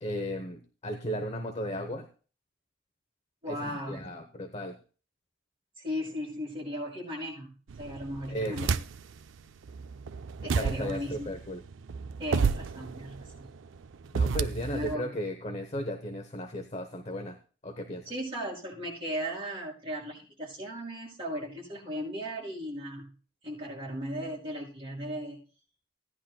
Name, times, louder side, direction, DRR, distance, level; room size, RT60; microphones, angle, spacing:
voice 1, 0.0-2.1 3.5-4.8 8.3-8.7 10.4-11.6 14.1-17.4 17.6-18.1, equal, 35° left, 5 dB, 0.9 m, -35 dB
voice 2, 3.4-4.1 5.8-8.8 10.4-11.3 12.2-13.5 14.7-15.1 18.0-23.1 23.4-25.4, equal, 30° right, -5 dB, 6.2 m, -36 dB
sound 1, 7.7-9.2 9.6-14.9, right 5 dB, 70° right, 0.4 m, -31 dB
17.0 x 10.5 x 2.3 m, 0.38 s
head